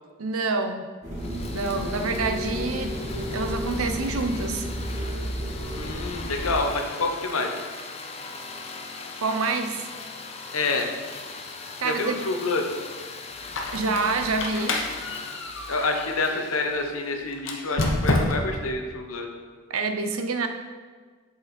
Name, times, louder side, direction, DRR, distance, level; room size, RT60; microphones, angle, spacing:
voice 1, 0.2-0.9 1.5-3.0 3.3-4.7 9.2-9.8 11.8-12.2 13.7-14.8 19.7-20.5, right 3 dB, 90° right, 7 dB, 0.7 m, -27 dB
sound 1, 1.0-6.6, equal, 30° right, 2.4 m, -32 dB
sound 2, 1.2-17.4, left 4 dB, 30° left, 0.6 m, -40 dB
voice 2, 5.8-7.6 10.5-10.9 11.8-12.6 15.7-19.3, left 3 dB, 90° left, 3 dB, 1.1 m, -27 dB
Squeak, 13.4-16.6 17.4-18.7, left 2 dB, 60° left, 0.9 m, -28 dB
8.3 x 6.2 x 4.3 m, 1.5 s
head